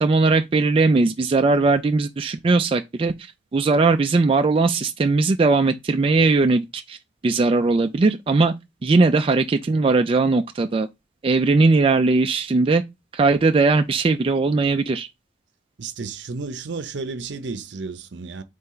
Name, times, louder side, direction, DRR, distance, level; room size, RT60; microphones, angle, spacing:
voice 1, 0.0-3.1 3.5-7.0 7.2-8.5 8.8-10.9 11.2-12.8 13.1-15.1, right 3 dB, 30° right, 0.3 m, -19 dB
voice 2, 15.8-18.4, right 4 dB, 70° right, 0.6 m, -32 dB
4.2 x 3.3 x 3.8 m
head